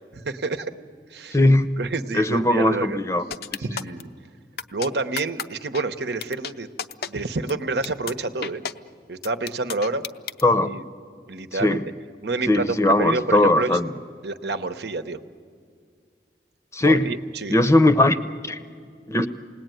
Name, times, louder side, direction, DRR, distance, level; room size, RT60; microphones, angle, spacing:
voice 1, 0.1-0.7 1.1-1.4 1.8-3.0 3.6-4.1 4.7-6.7 7.1-8.6 9.1-10.0 10.6-10.8 11.3-11.8 12.2-13.7 14.2-15.2 16.8-17.6, right 3 dB, 75° right, 9 dB, 1.0 m, -28 dB
voice 2, 1.3-1.7 2.1-3.2 10.4-10.7 11.6-11.9 12.5-13.9 16.7-17.1 17.5-18.2 18.4-18.6 19.1-19.3, left 1 dB, 15° left, 11 dB, 0.7 m, -19 dB
sound 1, 3.3-4.0 4.6-4.9 5.2-5.4 5.7-5.8 6.2-6.5 6.8-7.1 7.5-7.6 7.8-8.1 8.4-8.7 9.2-10.4, left 7 dB, 60° left, 0.6 m, -31 dB
28.5 x 19.0 x 9.2 m, 2.2 s
head